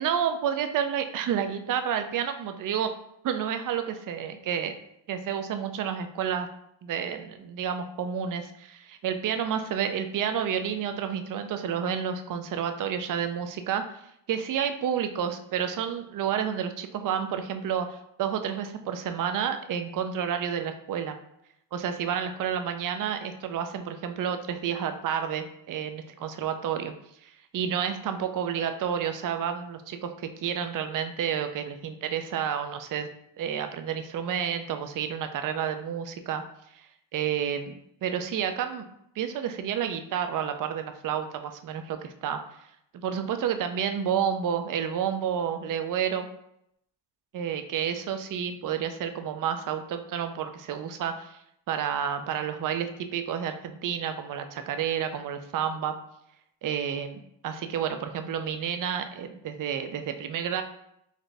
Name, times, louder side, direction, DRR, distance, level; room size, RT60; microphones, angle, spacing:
voice 1, 0.0-2.9 3.2-4.7 5.1-6.5 6.8-14.0 14.3-21.2 21.7-26.9 27.2-33.1 33.4-36.4 36.7-36.9 37.1-37.7 38.0-38.9 39.2-42.4 42.9-46.3 47.3-51.4 51.7-56.0 56.6-60.6, right 8 dB, 45° right, 8 dB, 0.5 m, -30 dB
4.0 x 2.5 x 3.3 m, 0.76 s
cardioid pair, 95°, 46 cm